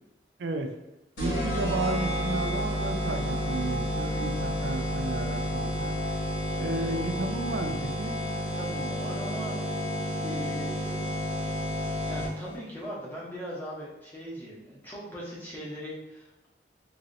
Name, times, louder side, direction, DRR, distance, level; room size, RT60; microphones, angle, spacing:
voice 1, 0.4-0.8 1.2-6.0 6.6-8.2, right 2 dB, 75° right, 6 dB, 0.4 m, -33 dB
sound 1, 1.2-12.6, equal, 85° left, 1.1 m, -30 dB
voice 2, 8.5-9.6 10.2-11.6 12.1-16.5, equal, 10° left, -6 dB, 0.7 m, -40 dB
3.0 x 2.7 x 2.6 m, 0.99 s
head